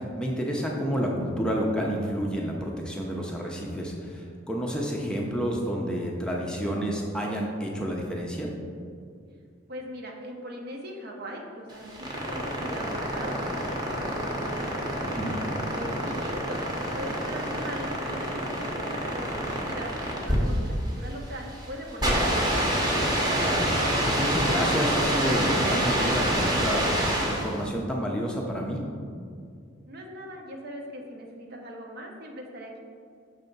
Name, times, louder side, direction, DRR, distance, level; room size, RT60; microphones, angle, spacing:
voice 1, 0.0-8.5 15.0-15.3 23.4-28.8, equal, 5° left, -2 dB, 0.5 m, -30 dB
voice 2, 9.7-15.0 15.7-23.1 29.9-32.8, equal, 55° right, 1 dB, 0.8 m, -40 dB
sound 1, 11.7-27.6, right 1 dB, 20° right, 0.9 m, -27 dB
6.2 x 3.4 x 5.3 m, 2.2 s
head